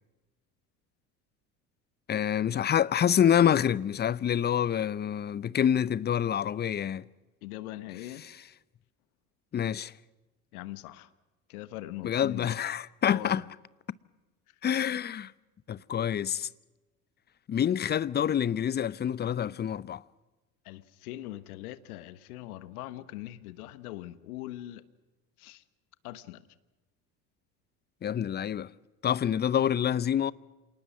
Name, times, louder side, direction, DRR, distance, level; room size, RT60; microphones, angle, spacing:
voice 1, 2.1-7.0 9.5-9.9 12.0-13.4 14.6-15.3 15.7-16.5 17.5-20.0 28.0-28.7 29.0-30.3, left 9 dB, 20° left, 0.6 m, -27 dB
voice 2, 7.4-8.2 10.5-11.1 11.5-12.5 13.1-13.4 14.5-14.6 20.6-24.9 25.4-25.6 26.0-26.5, left 15 dB, 70° left, 1.3 m, -41 dB
27.5 x 19.0 x 6.2 m
hypercardioid pair, 70°, 47 cm